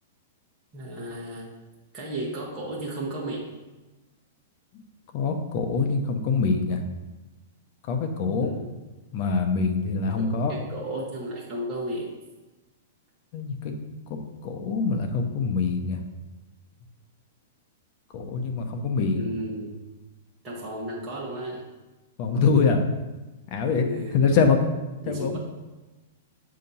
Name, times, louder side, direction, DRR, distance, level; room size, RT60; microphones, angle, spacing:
voice 1, 0.7-1.5 1.9-3.5 8.4-8.8 10.2-10.3 10.5-12.1 19.1-19.7 20.4-21.6 23.8-24.2 25.0-25.4, right 1 dB, 20° right, -6 dB, 1.1 m, -33 dB
voice 2, 5.1-6.8 7.9-8.6 9.1-10.6 13.3-13.7 14.1-14.2 14.4-16.0 18.1-19.2 22.2-22.8 23.5-23.9 24.1-24.6 25.1-25.4, left 5 dB, 40° left, 4 dB, 0.8 m, -24 dB
7.4 x 2.9 x 5.4 m, 1.1 s
hypercardioid pair, 150°, 0 cm